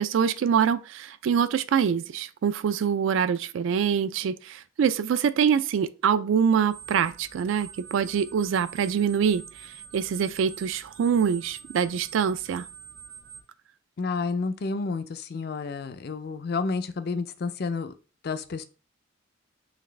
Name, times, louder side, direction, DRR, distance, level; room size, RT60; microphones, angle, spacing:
voice 1, 0.0-12.7, right 7 dB, 70° right, 0.3 m, -25 dB
sound 1, 6.7-13.4, right 8 dB, 50° right, 0.8 m, -46 dB
voice 2, 14.0-17.9 18.2-18.6, left 4 dB, 50° left, 0.4 m, -30 dB
4.0 x 3.3 x 3.2 m
head